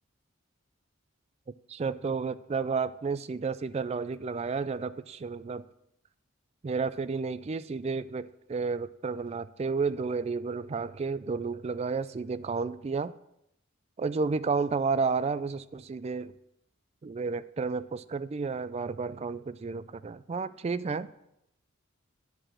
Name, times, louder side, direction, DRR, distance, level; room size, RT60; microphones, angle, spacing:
voice 1, 1.7-5.7 6.6-13.1 14.0-16.3 17.0-21.1, right 4 dB, 30° right, 0.3 m, -31 dB
10.0 x 4.8 x 7.3 m
head